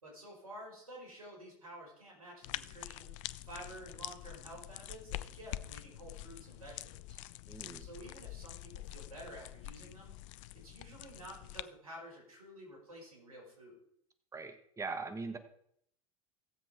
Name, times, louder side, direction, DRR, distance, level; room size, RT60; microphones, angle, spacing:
voice 1, 0.0-3.2 3.4-7.2 7.8-10.2 10.6-13.8, right 1 dB, 80° right, -2 dB, 5.3 m, -51 dB
sound 1, 2.4-11.6, left 16 dB, 60° left, 0.5 m, -46 dB
voice 2, 7.5-7.9 14.3-15.4, right 4 dB, 15° right, 9 dB, 1.3 m, -41 dB
17.0 x 7.6 x 4.5 m, 0.69 s
figure-of-eight pair, 80°, 18 cm